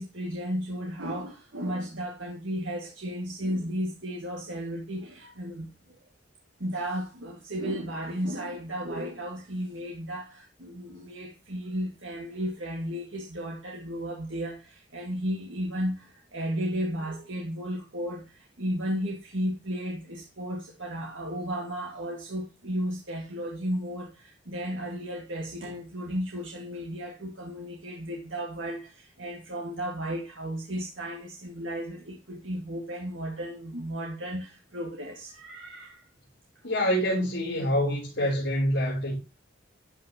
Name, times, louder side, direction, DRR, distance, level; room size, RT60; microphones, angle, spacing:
voice 1, 0.0-6.0 6.6-36.0, equal, 80° right, 2.0 m, -34 dB
voice 2, 36.6-39.2, equal, 75° left, 3.6 m, -26 dB
12.0 x 5.8 x 3.0 m
head